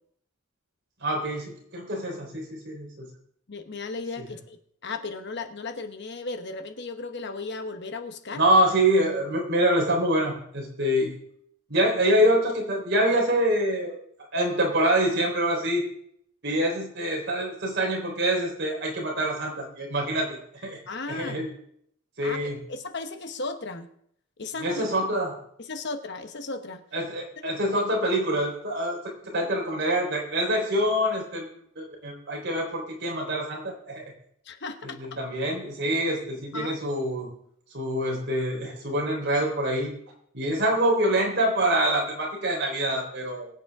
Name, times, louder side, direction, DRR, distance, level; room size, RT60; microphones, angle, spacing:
voice 1, 1.0-3.1 4.2-4.3 8.3-11.1 11.7-14.0 14.3-15.8 16.4-20.8 21.1-21.5 22.2-22.6 24.6-25.3 26.9-29.0 29.3-31.5 31.8-34.1 34.8-37.3 37.7-39.9 40.3-43.5, right 1 dB, 50° right, -1 dB, 3.8 m, -25 dB
voice 2, 3.5-8.4 20.9-21.4 22.2-23.9 24.4-24.8 25.6-26.8 27.4-27.5 34.4-35.2 36.5-36.8, left 3 dB, 50° left, 7 dB, 1.0 m, -35 dB
23.0 x 8.1 x 3.6 m, 0.69 s
head